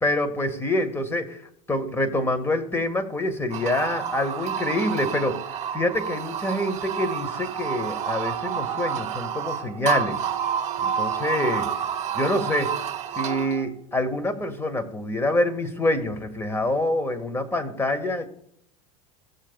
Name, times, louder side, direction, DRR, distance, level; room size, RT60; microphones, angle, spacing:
voice 1, 0.0-1.4 1.7-5.4 5.7-10.2 10.8-11.7 12.1-12.7 13.2-18.3, left 1 dB, 15° left, 7 dB, 1.7 m, -26 dB
sound 1, 3.5-13.7, right 8 dB, 40° right, 1.5 m, -29 dB
16.5 x 7.4 x 2.4 m, 0.68 s
supercardioid pair, 110°, 18 cm